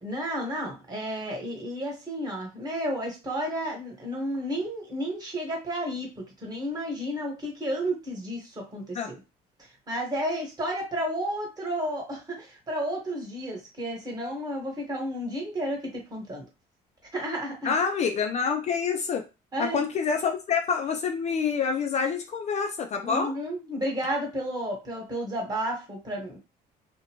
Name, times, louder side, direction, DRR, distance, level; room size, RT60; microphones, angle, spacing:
voice 1, 0.0-9.2 9.9-16.4 17.1-17.7 19.5-19.9 23.0-26.4, equal, 25° right, 0 dB, 1.2 m, -32 dB
voice 2, 17.6-19.2 19.6-23.3, left 6 dB, 40° left, 5 dB, 0.4 m, -27 dB
2.5 x 2.1 x 2.9 m, 0.29 s
cardioid pair, 110°, 17 cm